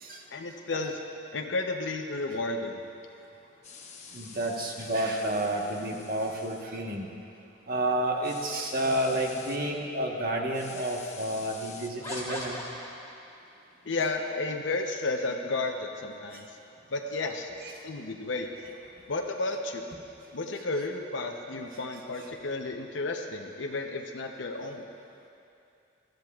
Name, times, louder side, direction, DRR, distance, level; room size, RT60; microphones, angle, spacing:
voice 1, 0.3-1.0 1.3-2.8 13.8-16.5 16.9-17.5 17.8-18.5 19.1-19.9 20.3-24.9, left 3 dB, 65° left, 3 dB, 0.8 m, -32 dB
sound 1, 3.6-6.6 8.2-9.6 10.5-11.9, left 5 dB, 35° left, 1.0 m, -47 dB
voice 2, 4.1-7.1 7.7-12.6, right 1 dB, 50° right, 0 dB, 1.2 m, -30 dB
sound 2, 8.8-9.7 10.5-10.6 12.0-13.3, left 1 dB, 15° left, 2.1 m, -40 dB
21.0 x 13.0 x 2.4 m, 2.6 s
head